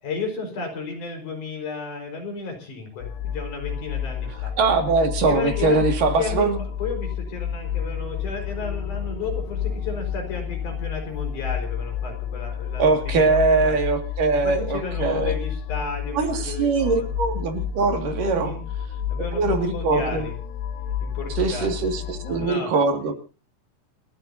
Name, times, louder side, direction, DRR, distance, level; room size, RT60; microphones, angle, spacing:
voice 1, 0.0-4.5 5.2-6.5 6.8-13.3 13.6-13.8 14.4-17.1 18.4-18.6 19.1-20.4 21.0-21.7 22.2-22.7, left 4 dB, 60° left, 4 dB, 6.3 m, -33 dB
sound 1, 3.0-22.5, left 8 dB, 85° left, 2.8 m, -30 dB
voice 2, 4.6-6.6 12.8-15.3 16.2-18.5 19.3-20.2 21.4-23.1, right 4 dB, 65° right, 6 dB, 3.8 m, -22 dB
29.0 x 13.5 x 2.8 m, 0.36 s
omnidirectional pair, 4.1 m